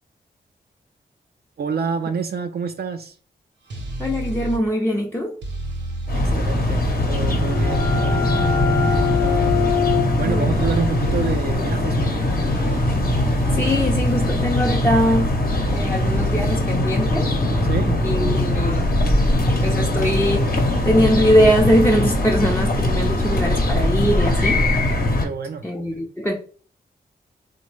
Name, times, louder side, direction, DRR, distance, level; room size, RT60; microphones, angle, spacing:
voice 1, 1.6-3.2 6.1-8.4 8.7-12.2 17.7-18.1 25.2-25.7, right 5 dB, 60° right, 0.4 m, -28 dB
sound 1, 3.7-4.6 5.4-8.0 8.8-9.8 10.6-11.5 12.3-14.9 15.7-16.6, right 1 dB, 80° right, 0.7 m, -31 dB
voice 2, 4.0-5.4 10.2-10.7 13.5-15.4 15.7-17.3 18.0-18.9 19.5-24.7 25.6-26.3, equal, 10° left, 0.5 m, -21 dB
sound 2, 6.1-25.3, left 1 dB, 55° left, 0.9 m, -21 dB
sound 3, 6.9-12.5, left 7 dB, 80° left, 0.7 m, -26 dB
3.3 x 2.0 x 3.2 m
cardioid pair, 45°, 18 cm